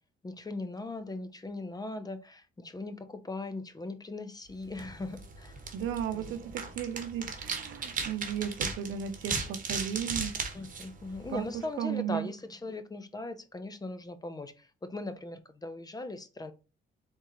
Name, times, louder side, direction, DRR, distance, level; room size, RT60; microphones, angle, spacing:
voice 1, 0.2-5.7 6.1-6.5 10.5-16.5, left 2 dB, 20° left, 0.6 m, -39 dB
sound 1, 4.7-11.6, right 4 dB, 45° right, 1.1 m, -37 dB
voice 2, 5.7-10.4 11.3-11.5 11.8-12.3, right 8 dB, 85° right, 0.7 m, -35 dB
3.8 x 3.7 x 3.0 m
cardioid pair, 90°, 20 cm